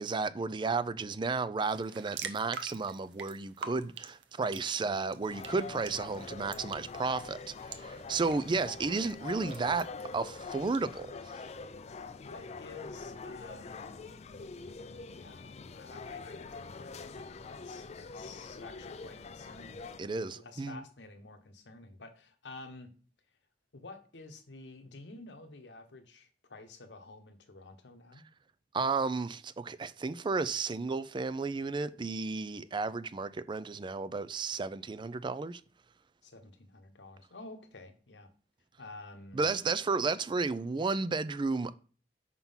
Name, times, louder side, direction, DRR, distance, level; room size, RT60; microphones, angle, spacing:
voice 1, 0.0-9.9 10.1-11.1 20.0-20.8 28.7-35.6 39.3-41.7, right 4 dB, 25° right, 0.4 m, -33 dB
sound 1, 1.7-10.8, right 6 dB, 80° right, 0.7 m, -47 dB
sound 2, 5.2-20.0, left 4 dB, 40° left, 0.4 m, -44 dB
voice 2, 12.2-14.0 15.1-22.9 23.7-28.2 36.2-38.3 38.8-39.5, left 2 dB, 85° left, 1.0 m, -50 dB
5.8 x 3.7 x 5.5 m
head